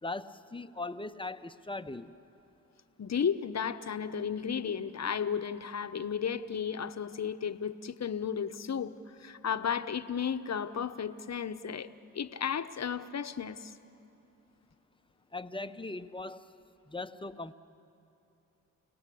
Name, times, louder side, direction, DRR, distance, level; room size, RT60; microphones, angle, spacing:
voice 1, 0.0-2.1 15.3-16.4 16.9-17.5, left 2 dB, 15° left, 11 dB, 1.0 m, -39 dB
voice 2, 3.0-8.9 9.2-13.7, left 7 dB, 45° left, 11 dB, 1.1 m, -34 dB
29.5 x 18.5 x 8.5 m, 2.8 s
supercardioid pair, 50°, 35 cm